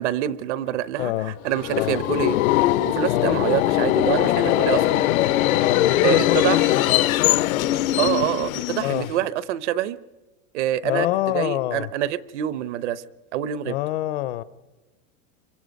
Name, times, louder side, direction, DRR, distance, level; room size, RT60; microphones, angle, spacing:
voice 1, 0.0-2.4 2.7-5.0 6.0-6.7 8.0-10.0 10.5-13.0 13.3-13.7, right 12 dB, 55° right, 0.8 m, -26 dB
voice 2, 1.0-1.4 1.7-2.0 3.1-3.4 5.6-7.7 8.8-9.1 10.8-11.9 13.7-14.4, left 15 dB, 50° left, 0.7 m, -26 dB
Subway metro underground, 1.5-9.2, left 15 dB, 75° left, 0.9 m, -21 dB
28.0 x 25.0 x 5.3 m
supercardioid pair, 180°, 42 cm